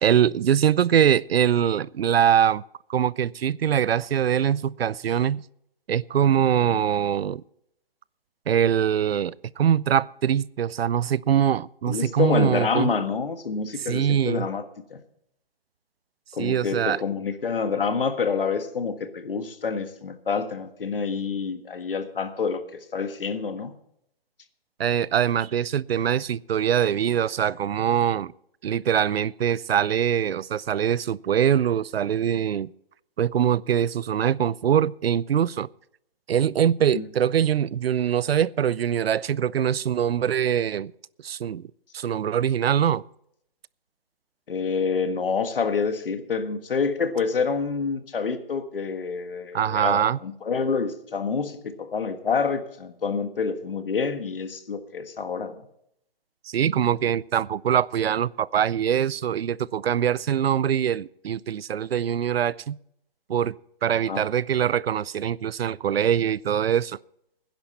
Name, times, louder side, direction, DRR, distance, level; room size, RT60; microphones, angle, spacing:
voice 1, 0.0-2.6 2.9-5.4 5.9-7.4 8.5-12.9 13.8-14.5 16.4-17.0 24.8-28.3 28.6-32.7 33.2-35.7 36.3-40.9 41.2-41.6 41.9-43.0 49.5-50.2 56.5-62.8 63.3-63.5 63.8-67.0, right 9 dB, 90° right, 0.5 m, -23 dB
voice 2, 11.9-14.6 14.9-15.0 16.3-23.8 36.9-37.1 44.5-55.6 64.1-64.2, left 5 dB, 70° left, 1.6 m, -27 dB
17.5 x 10.5 x 4.2 m
hypercardioid pair, 170°, 29 cm